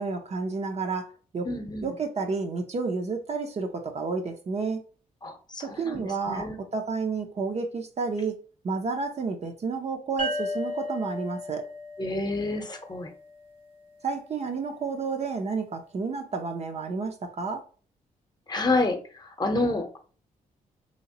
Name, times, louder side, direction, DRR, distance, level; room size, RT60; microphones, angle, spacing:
voice 1, 0.0-1.5 1.8-4.8 5.6-8.4 8.6-11.7 14.0-17.7, right 4 dB, 45° right, 0.6 m, -31 dB
voice 2, 1.4-1.9 5.2-6.6 12.0-13.1 18.5-20.0, left 2 dB, 30° left, 0.8 m, -29 dB
sound 1, 10.2-13.6, left 2 dB, 65° right, 1.0 m, -35 dB
3.1 x 2.9 x 2.9 m
cardioid pair, 75°, 15 cm